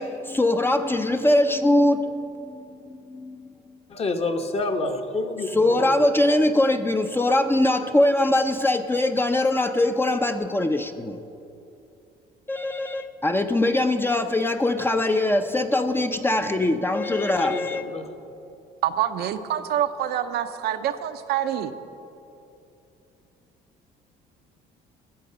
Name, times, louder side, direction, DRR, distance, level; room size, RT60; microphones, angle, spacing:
voice 1, 0.0-3.5 5.5-11.2 12.5-17.8, left 1 dB, 15° left, 6 dB, 0.6 m, -22 dB
voice 2, 3.9-6.0 17.4-18.0, left 2 dB, 35° left, 5 dB, 1.1 m, -28 dB
voice 3, 18.8-21.7, right 10 dB, 70° right, 8 dB, 0.7 m, -26 dB
14.0 x 8.5 x 6.8 m, 2.7 s
cardioid pair, 110°, 17 cm